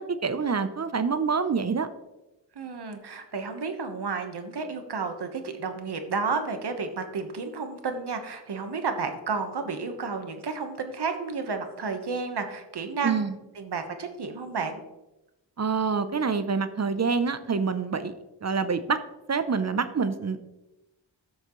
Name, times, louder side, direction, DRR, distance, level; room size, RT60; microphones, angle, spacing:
voice 1, 0.0-1.9 13.0-13.3 15.6-18.1 18.4-19.0 19.3-20.4, right 5 dB, 35° right, 11 dB, 0.7 m, -26 dB
voice 2, 2.5-13.3 13.5-14.8, right 4 dB, 65° right, 6 dB, 1.3 m, -32 dB
14.5 x 6.4 x 3.1 m, 0.99 s
wide cardioid pair, 85°, 44 cm